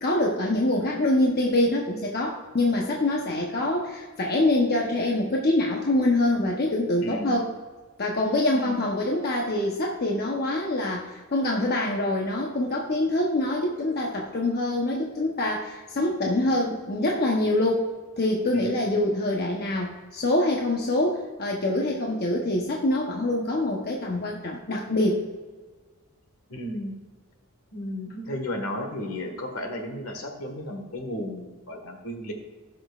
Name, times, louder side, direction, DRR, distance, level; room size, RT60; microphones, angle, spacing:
voice 1, 0.0-7.5 8.0-17.8 18.2-25.2, left 1 dB, 50° left, -1 dB, 0.9 m, -25 dB
voice 2, 7.0-7.4 8.5-8.9 18.5-19.1 26.5-27.0 27.7-32.3, left 1 dB, 70° left, 3 dB, 1.6 m, -34 dB
17.5 x 6.1 x 2.4 m, 1.3 s
head